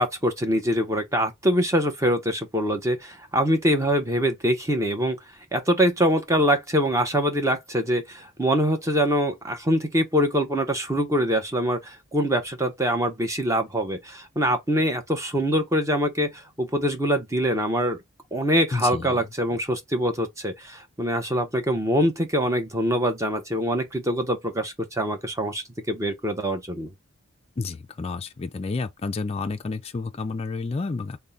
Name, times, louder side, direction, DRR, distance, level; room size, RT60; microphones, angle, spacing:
voice 1, 0.0-5.2 5.5-18.0 18.3-26.9, equal, 15° right, 0.7 m, -24 dB
voice 2, 18.7-19.2 27.6-31.2, left 4 dB, 30° left, 0.4 m, -30 dB
3.6 x 2.1 x 3.9 m
head